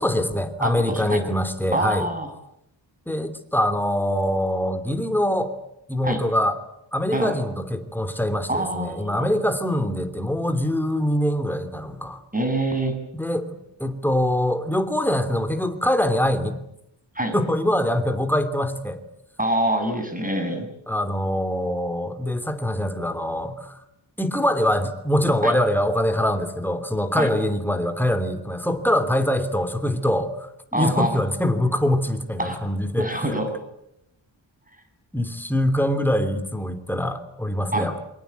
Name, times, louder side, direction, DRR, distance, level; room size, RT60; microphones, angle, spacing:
voice 1, 0.0-2.1 3.1-5.5 5.9-6.6 6.9-12.2 13.1-16.6 17.3-19.0 20.9-23.8 24.2-33.4 35.1-38.0, left 1 dB, 5° left, 8 dB, 2.9 m, -24 dB
voice 2, 0.6-1.2 1.7-2.3 6.0-6.2 7.1-7.3 8.5-9.3 12.3-13.0 17.2-17.4 19.4-20.7 25.4-25.5 27.2-27.3 30.7-31.2 32.4-32.6 33.0-33.6 37.7-37.9, right 1 dB, 15° right, 5 dB, 6.9 m, -25 dB
27.5 x 24.5 x 8.2 m, 0.81 s
wide cardioid pair, 115°, 47 cm